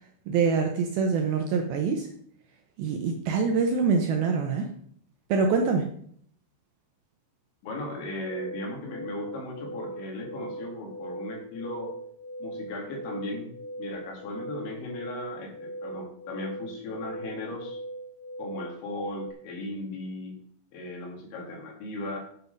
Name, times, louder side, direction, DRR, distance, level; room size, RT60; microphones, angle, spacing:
voice 1, 0.3-2.1 2.8-4.7 5.3-5.9, right 5 dB, 75° right, 4 dB, 2.3 m, -25 dB
voice 2, 7.6-11.9 12.4-13.5 13.8-17.8 18.4-20.4 20.7-22.2, left 2 dB, 75° left, 1 dB, 4.6 m, -37 dB
sound 1, 8.2-19.3, right 1 dB, 55° right, 1.5 m, -40 dB
9.5 x 8.2 x 5.3 m, 0.65 s
omnidirectional pair, 5.3 m